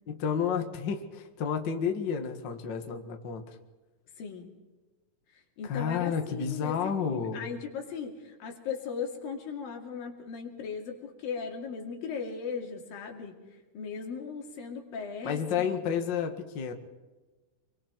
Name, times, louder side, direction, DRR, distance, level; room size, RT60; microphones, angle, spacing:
voice 1, 0.1-3.6 5.6-7.5 15.2-16.7, left 7 dB, 45° left, 5 dB, 1.8 m, -31 dB
voice 2, 4.2-4.5 5.6-6.8 7.0-13.4 13.7-16.0, left 6 dB, 85° left, 2 dB, 4.3 m, -38 dB
26.5 x 23.0 x 4.6 m, 1.2 s
omnidirectional pair, 4.0 m